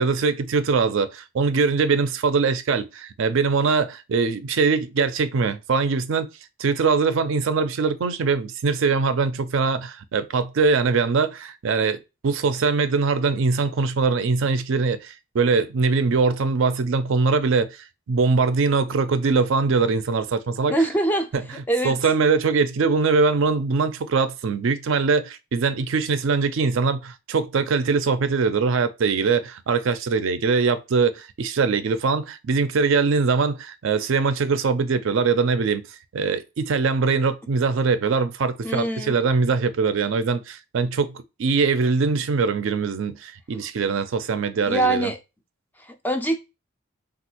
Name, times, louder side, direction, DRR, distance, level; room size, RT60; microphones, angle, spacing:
voice 1, 0.0-6.3 6.6-20.7 21.3-21.4 21.8-35.8 36.1-45.1, right 4 dB, 60° right, 0.4 m, -22 dB
voice 2, 20.7-21.3 21.7-22.0 38.6-39.2 44.7-45.2 45.8-46.4, right 1 dB, 10° left, 0.3 m, -23 dB
3.4 x 2.3 x 2.7 m
head